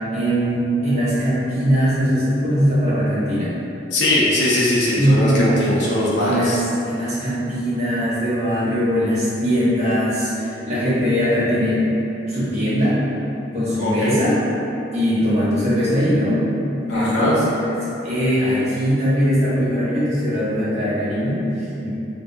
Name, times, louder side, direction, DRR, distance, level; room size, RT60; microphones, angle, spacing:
voice 1, 0.1-3.5 5.0-5.7 6.2-11.9 12.3-13.0 13.5-14.4 14.9-16.5 16.9-17.4 18.0-21.9, equal, 35° right, -11 dB, 1.3 m, -20 dB
voice 2, 3.9-6.6 13.8-14.2 16.9-17.3, left 1 dB, 70° left, -7 dB, 1.0 m, -20 dB
5.3 x 3.7 x 2.3 m, 2.9 s
head